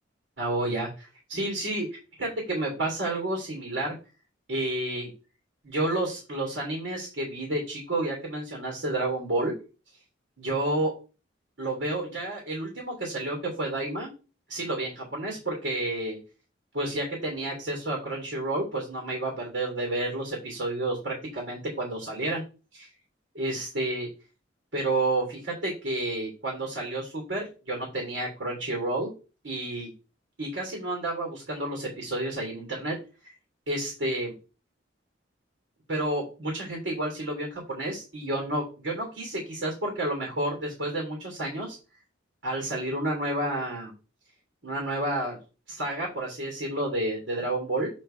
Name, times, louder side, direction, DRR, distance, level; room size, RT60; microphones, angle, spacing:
voice 1, 0.4-3.9 4.5-5.1 5.6-9.5 10.4-10.9 11.6-14.1 14.5-16.2 16.7-22.4 22.7-22.9 23.3-24.1 24.7-29.1 29.4-29.9 30.4-32.9 33.7-34.3 35.9-41.8 42.4-43.9 44.6-45.4 45.7-47.9, right 1 dB, 85° right, -1 dB, 3.2 m, -30 dB
7.9 x 4.1 x 4.5 m, 0.33 s
head